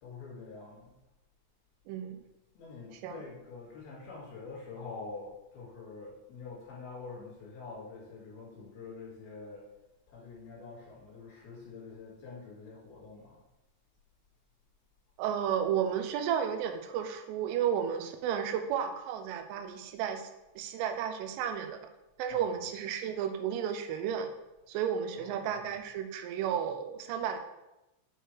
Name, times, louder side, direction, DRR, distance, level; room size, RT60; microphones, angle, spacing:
voice 1, 0.0-1.0 2.5-9.7 10.1-13.4 22.3-22.7 25.1-25.8, left 4 dB, 55° left, -5 dB, 3.5 m, -46 dB
voice 2, 1.9-2.2 2.9-3.2 15.2-20.3 20.6-21.8 22.2-24.3 24.7-27.4, right 8 dB, 85° right, 7 dB, 3.0 m, -33 dB
8.1 x 3.2 x 4.5 m, 0.96 s
omnidirectional pair, 5.9 m